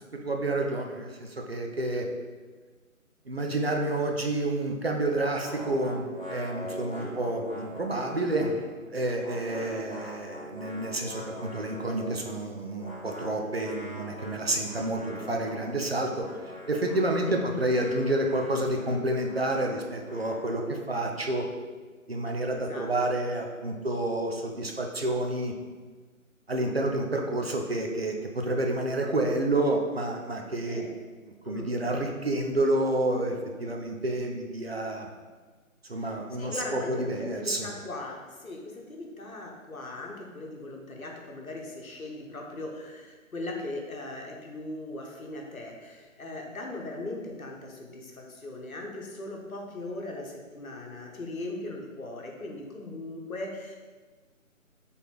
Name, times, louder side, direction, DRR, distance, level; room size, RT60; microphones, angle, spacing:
voice 1, 0.2-2.1 3.3-6.0 6.3-8.6 8.9-21.4 22.1-25.5 26.5-30.8 31.5-35.1 35.9-37.7, right 1 dB, 50° right, 2 dB, 0.5 m, -29 dB
sound 1, 5.4-8.7 9.0-12.3 12.7-20.8, equal, 10° right, 1.0 m, -43 dB
voice 2, 22.5-22.9 30.6-30.9 31.4-31.7 35.9-53.8, left 2 dB, 80° left, 0 dB, 0.9 m, -39 dB
4.1 x 3.5 x 3.0 m, 1.4 s
figure-of-eight pair, 150°, 41 cm